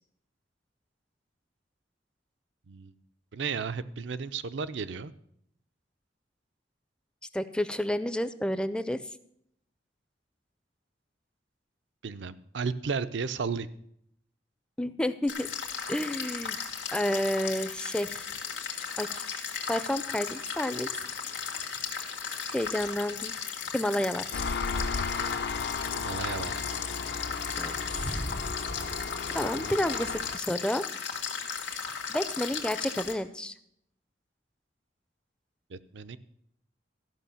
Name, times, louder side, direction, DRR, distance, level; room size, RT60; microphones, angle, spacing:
voice 1, 3.3-5.1 12.0-13.7 25.9-26.6 29.5-29.7 35.7-36.2, right 5 dB, 80° right, 13 dB, 0.5 m, -34 dB
voice 2, 7.3-9.0 14.8-15.5 15.9-16.6 16.9-18.2 19.0-19.2 19.7-20.9 22.5-23.3 23.7-24.2 27.6-28.2 29.3-30.8 32.1-33.5, left 1 dB, 5° left, 13 dB, 0.4 m, -30 dB
sound 1, 15.3-33.1, left 6 dB, 85° left, 1.7 m, -36 dB
Engine, 24.3-30.4, left 4 dB, 65° left, 0.6 m, -34 dB
14.0 x 5.7 x 6.9 m, 0.72 s
head